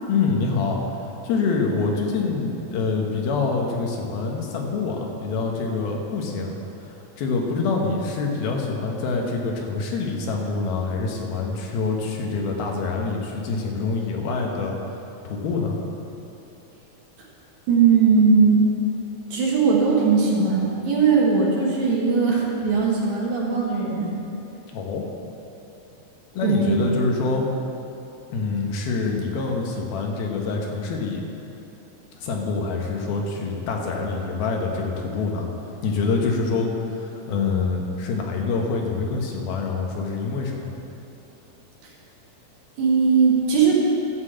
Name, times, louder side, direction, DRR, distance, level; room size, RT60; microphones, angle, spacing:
voice 1, 0.1-6.6 7.2-14.7 15.2-15.8 24.7-25.1 26.3-27.5 28.3-31.2 32.1-35.5 35.8-40.8, left 4 dB, 90° left, 1 dB, 3.2 m, -26 dB
voice 2, 17.7-18.7 19.3-24.1 26.4-26.8 41.8-41.9 42.8-43.7, right 5 dB, 60° right, -3 dB, 2.6 m, -19 dB
13.0 x 5.9 x 7.9 m, 2.9 s
omnidirectional pair, 4.2 m